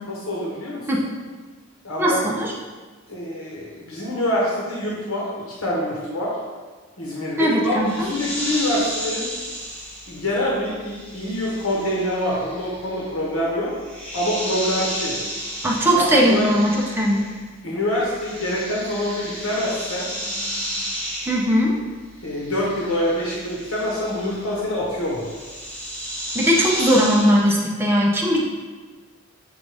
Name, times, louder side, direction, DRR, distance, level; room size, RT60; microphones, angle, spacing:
voice 1, 0.1-0.9 1.8-2.2 3.1-5.3 5.6-6.4 7.0-9.3 10.1-13.7 14.1-15.2 15.9-16.5 17.6-20.1 22.2-25.3, left 1 dB, 90° left, -4 dB, 1.1 m, -25 dB
voice 2, 2.0-2.5 7.4-8.1 15.6-17.2 21.3-21.8 26.3-28.4, equal, 10° right, -3 dB, 0.7 m, -19 dB
sound 1, 7.8-17.5 17.8-27.5, equal, 5° left, 1.5 m, -33 dB
7.2 x 3.9 x 3.4 m, 1.4 s
head